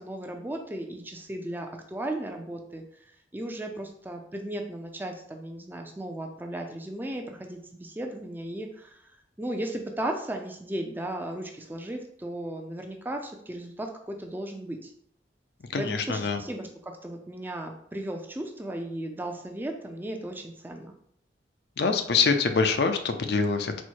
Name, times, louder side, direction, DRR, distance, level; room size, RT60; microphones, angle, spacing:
voice 1, 0.0-9.0 9.4-14.9 15.8-20.9, right 1 dB, 10° right, 3 dB, 0.4 m, -36 dB
voice 2, 15.7-16.4 21.8-23.8, left 4 dB, 60° left, 7 dB, 0.5 m, -25 dB
4.3 x 2.1 x 4.5 m, 0.68 s
head